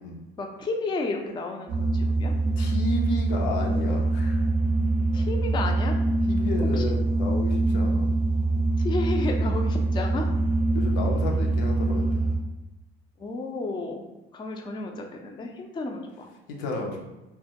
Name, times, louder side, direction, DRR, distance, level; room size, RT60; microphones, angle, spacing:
voice 1, 0.4-2.3 5.1-6.0 6.7-6.8 7.6-7.9 8.8-10.3 13.2-14.0 14.3-16.3, left 3 dB, 15° left, 2 dB, 0.3 m, -32 dB
sound 1, 1.7-12.4, right 2 dB, 55° right, 0.5 m, -24 dB
voice 2, 2.6-4.4 6.3-8.1 10.7-12.2 16.5-17.0, left 2 dB, 75° left, 0 dB, 0.6 m, -32 dB
2.1 x 2.1 x 2.7 m, 1.0 s
hypercardioid pair, 60°, 30 cm